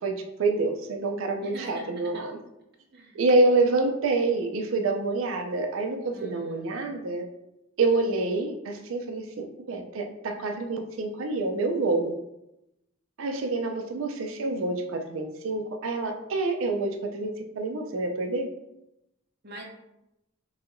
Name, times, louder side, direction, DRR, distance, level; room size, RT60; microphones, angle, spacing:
voice 1, 0.0-2.4 3.1-7.3 7.8-12.2 13.2-18.5, right 3 dB, 70° right, 4 dB, 0.4 m, -27 dB
voice 2, 1.4-2.2 2.9-3.2 6.1-6.7 19.4-19.6, right 2 dB, 50° right, 0 dB, 0.8 m, -43 dB
4.7 x 2.8 x 2.6 m, 0.88 s
head